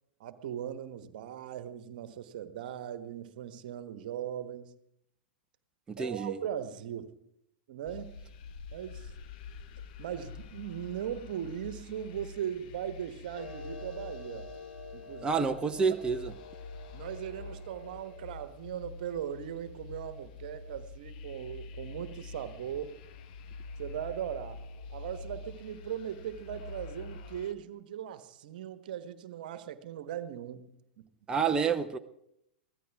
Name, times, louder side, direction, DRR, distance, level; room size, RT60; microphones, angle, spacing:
voice 1, 0.2-4.7 6.0-7.1 7.7-8.1 8.7-9.1 10.0-14.5 14.9-15.5 16.9-22.9 23.8-24.6 24.9-30.7 31.0-31.1, right 10 dB, 55° right, 1.3 m, -39 dB
voice 2, 5.9-6.4 15.2-16.3 31.3-32.0, right 5 dB, 15° right, 0.7 m, -28 dB
sound 1, 7.9-27.5, left 3 dB, 50° left, 1.2 m, -46 dB
Clock, 13.3-18.3, left 4 dB, 85° left, 2.2 m, -47 dB
23.5 x 16.0 x 3.6 m
figure-of-eight pair, 100°, 6 cm